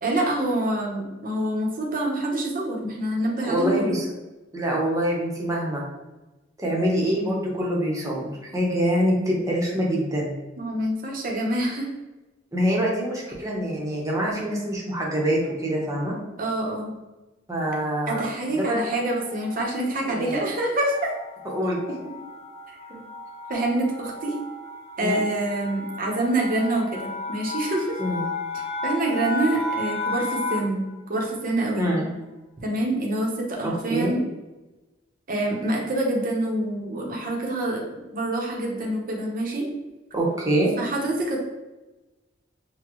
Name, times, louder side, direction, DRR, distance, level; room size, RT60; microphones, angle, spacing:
voice 1, 0.0-4.0 10.6-11.9 13.3-13.4 16.4-16.9 18.1-21.1 23.5-24.3 25.0-28.0 28.5-30.8 31.1-31.9 32.6-34.2 35.3-37.8 38.1-39.7 40.8-41.4, right 1 dB, 50° right, -1 dB, 1.0 m, -26 dB
voice 2, 3.4-4.1 4.5-5.8 6.6-10.4 12.5-16.1 17.5-18.2 18.5-18.9 20.0-20.3 21.4-22.0 22.9-23.0 25.0-25.2 28.0-28.2 31.8-32.1 33.6-34.1 40.1-40.7, equal, 20° right, -3 dB, 1.1 m, -25 dB
sound 1, 18.8-30.9, left 2 dB, 35° left, 0.5 m, -34 dB
6.2 x 2.4 x 3.0 m, 1.1 s
head